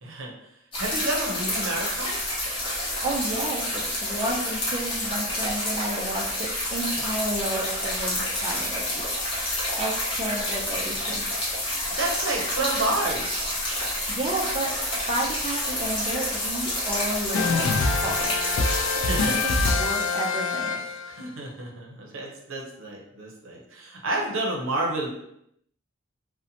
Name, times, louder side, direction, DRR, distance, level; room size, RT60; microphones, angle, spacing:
voice 1, 0.0-0.3 0.8-2.2 11.9-13.6 19.1-19.4 21.1-25.1, right 2 dB, 85° right, -1 dB, 0.6 m, -30 dB
sound 1, 0.7-19.7, left 1 dB, 25° left, 0.7 m, -29 dB
voice 2, 2.5-9.0 9.7-11.3 13.8-14.7 15.1-18.3 18.9-19.1 19.4-20.9, right 1 dB, 30° right, -3 dB, 0.3 m, -32 dB
sound 2, 17.3-21.2, left 4 dB, 70° left, 0.3 m, -25 dB
2.7 x 2.1 x 2.7 m, 0.77 s
head